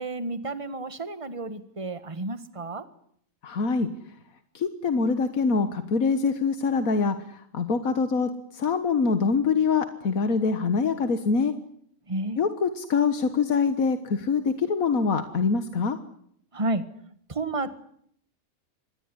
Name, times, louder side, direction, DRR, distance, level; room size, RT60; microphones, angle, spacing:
voice 1, 0.0-2.9 12.1-12.4 16.5-16.8 17.3-17.8, right 2 dB, 25° right, 12 dB, 1.7 m, -31 dB
voice 2, 3.4-3.9 4.5-11.5 12.4-16.0, left 5 dB, 85° left, 9 dB, 1.9 m, -24 dB
26.5 x 20.0 x 9.9 m, 0.68 s
omnidirectional pair, 1.4 m